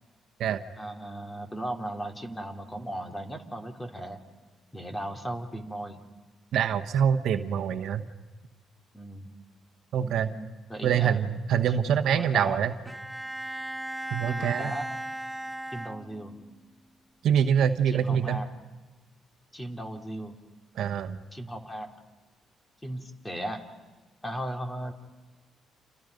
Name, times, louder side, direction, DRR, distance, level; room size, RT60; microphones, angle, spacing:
voice 1, 0.8-4.2 4.7-6.0 8.9-9.3 10.0-11.2 11.7-12.6 14.3-14.9 15.7-16.4 17.9-18.5 19.5-20.4 21.3-21.9 22.8-23.6 24.2-24.9, right 1 dB, 15° left, 4 dB, 2.9 m, -36 dB
voice 2, 6.5-8.1 9.9-10.3 10.8-12.7 14.1-14.7 17.2-18.4 20.8-21.2, right 8 dB, 75° right, 9 dB, 1.2 m, -25 dB
Bowed string instrument, 12.9-16.5, right 1 dB, 5° right, 1.2 m, -37 dB
30.0 x 28.0 x 5.3 m, 1.2 s
cardioid pair, 90°, 0 cm